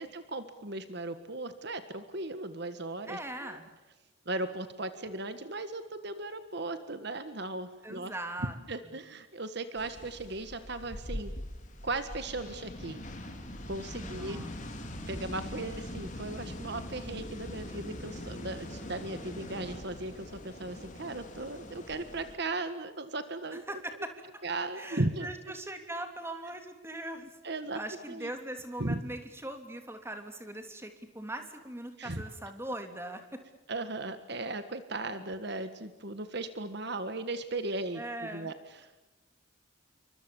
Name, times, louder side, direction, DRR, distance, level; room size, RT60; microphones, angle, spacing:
voice 1, 0.0-3.6 4.3-8.1 8.7-11.3 11.8-13.0 13.7-14.4 15.1-23.6 24.4-25.3 27.4-27.8 28.1-28.3 28.8-29.0 32.0-32.2 33.7-39.0, right 2 dB, 50° right, 10 dB, 1.6 m, -37 dB
voice 2, 3.1-3.7 7.8-8.5 14.0-14.6 23.7-24.1 24.7-27.4 27.7-33.4 37.9-38.5, right 1 dB, 10° right, 6 dB, 3.1 m, -40 dB
sound 1, 9.8-22.4, left 1 dB, 35° left, 3.9 m, -42 dB
29.0 x 24.5 x 7.2 m, 1.1 s
head